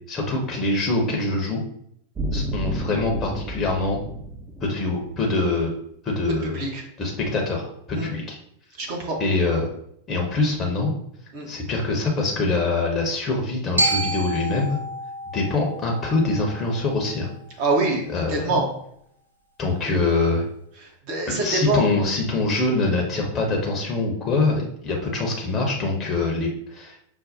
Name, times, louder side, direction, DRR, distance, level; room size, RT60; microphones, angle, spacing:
voice 1, 0.1-1.6 2.3-4.0 4.6-5.7 6.0-6.6 7.0-8.4 9.2-9.7 10.1-10.9 11.5-14.8 15.3-17.3 18.1-18.6 19.6-20.4 21.4-27.0, left 3 dB, 25° left, 0 dB, 0.7 m, -24 dB
sound 1, 2.2-5.4, right 1 dB, 20° right, 0.6 m, -30 dB
voice 2, 6.5-6.8 7.9-8.1 8.8-9.2 11.3-11.5 17.6-18.7 20.8-21.9, right 2 dB, 45° right, 0 dB, 1.0 m, -25 dB
Glockenspiel, 13.8-17.9, right 1 dB, 80° right, 0.5 m, -29 dB
5.2 x 2.1 x 2.6 m, 0.70 s
figure-of-eight pair, 90°, 0 cm